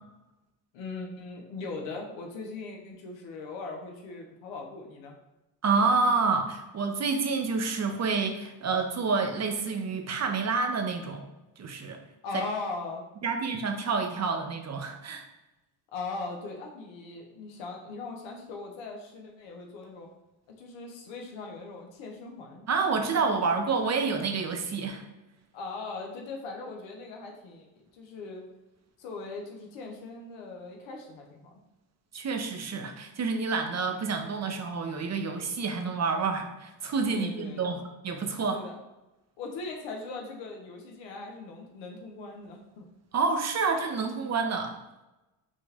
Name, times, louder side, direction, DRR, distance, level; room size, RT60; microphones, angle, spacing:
voice 1, 0.7-5.2 12.2-13.0 15.9-20.1 20.6-22.7 25.5-28.5 29.0-31.5 37.1-37.8 38.4-38.8 39.4-42.9, left 3 dB, 85° left, 1 dB, 1.0 m, -39 dB
voice 2, 5.6-11.3 11.6-12.0 12.3-12.4 13.2-15.2 22.7-25.0 32.1-38.6 43.1-44.7, right 4 dB, 35° right, 5 dB, 0.7 m, -28 dB
5.3 x 2.5 x 3.3 m, 1.0 s
supercardioid pair, 80°, 44 cm